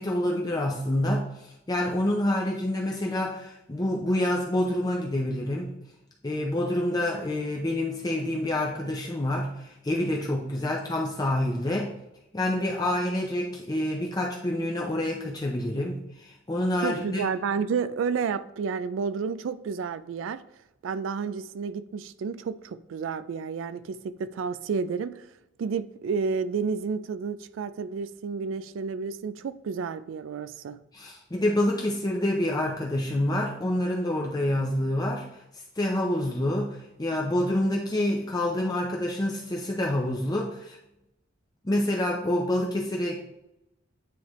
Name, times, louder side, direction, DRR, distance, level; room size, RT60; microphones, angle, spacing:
voice 1, 0.0-5.7 6.2-11.9 12.3-17.2 30.9-35.4 35.8-40.8 41.6-43.2, left 1 dB, 20° left, -1 dB, 0.6 m, -27 dB
voice 2, 16.8-20.4 20.8-25.3 25.6-30.8, right 5 dB, 80° right, 13 dB, 0.3 m, -31 dB
9.3 x 3.3 x 3.1 m, 0.87 s
head